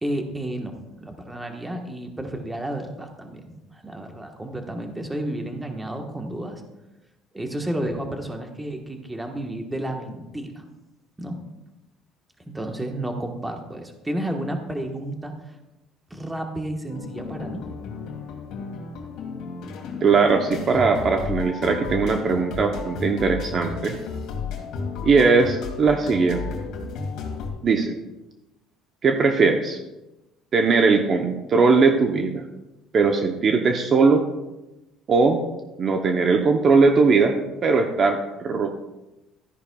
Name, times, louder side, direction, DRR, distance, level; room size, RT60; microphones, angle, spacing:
voice 1, 0.0-6.6 7.3-10.7 11.2-11.3 12.4-15.3 16.1-17.6, right 1 dB, 10° right, 3 dB, 1.2 m, -31 dB
sound 1, 16.9-27.5, left 5 dB, 70° left, 1.9 m, -33 dB
voice 2, 20.0-24.0 25.0-26.5 27.6-27.9 29.0-29.8 30.5-32.4 32.9-34.3 35.1-35.4 35.8-37.4 37.6-38.7, right 4 dB, 40° right, 4 dB, 0.8 m, -19 dB
13.0 x 10.0 x 2.3 m, 0.99 s
cardioid pair, 130°, 0 cm